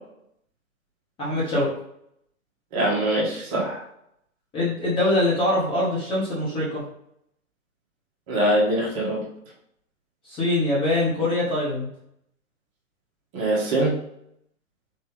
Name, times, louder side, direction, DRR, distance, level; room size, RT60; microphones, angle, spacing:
voice 1, 1.2-1.7 4.5-6.8 10.2-11.9, left 1 dB, 10° left, -7 dB, 1.0 m, -23 dB
voice 2, 2.7-3.8 8.3-9.2 13.3-13.9, right 1 dB, 25° right, -3 dB, 1.0 m, -23 dB
4.0 x 3.4 x 3.2 m, 0.74 s
figure-of-eight pair, 125°, 42 cm